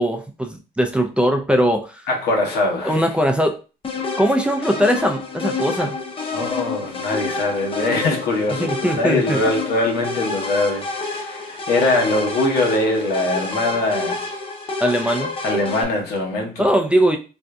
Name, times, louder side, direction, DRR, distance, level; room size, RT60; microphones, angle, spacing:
voice 1, 0.0-2.0 2.8-3.6 4.2-6.0 8.6-9.4 14.8-15.3 16.6-17.2, equal, 5° right, 0.4 m, -20 dB
voice 2, 2.1-3.0 6.3-14.3 15.4-16.7, left 2 dB, 75° left, 1.0 m, -22 dB
sound 1, 3.8-15.8, left 3 dB, 30° left, 0.7 m, -28 dB
3.7 x 2.6 x 2.3 m
cardioid pair, 110°, 17 cm